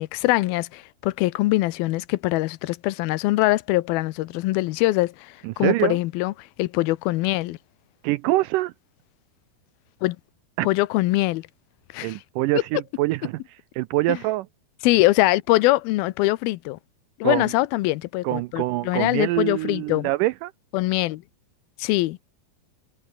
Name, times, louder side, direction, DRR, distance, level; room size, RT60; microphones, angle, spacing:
voice 1, 0.0-6.3 6.6-7.6 10.0-10.2 10.6-11.5 11.9-12.2 14.1-14.2 14.8-16.8 17.2-20.1 20.7-21.2 21.8-22.2, left 19 dB, 90° left, 2.7 m, -23 dB
voice 2, 5.4-6.0 8.0-8.7 10.6-10.7 12.0-13.4 13.8-14.5 17.2-17.4 18.2-20.5, right 18 dB, 80° right, 2.0 m, -24 dB
omnidirectional pair, 4.2 m